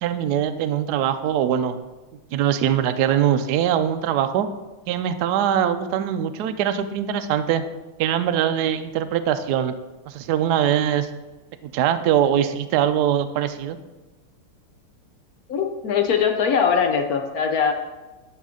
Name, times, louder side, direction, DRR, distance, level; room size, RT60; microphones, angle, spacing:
voice 1, 0.0-1.9 2.3-4.5 4.9-7.6 8.0-9.8 10.1-11.1 11.6-13.8, right 10 dB, 80° right, 9 dB, 0.8 m, -22 dB
voice 2, 15.5-17.7, left 6 dB, 65° left, 5 dB, 0.9 m, -21 dB
11.5 x 6.0 x 3.7 m, 1.1 s
omnidirectional pair, 2.4 m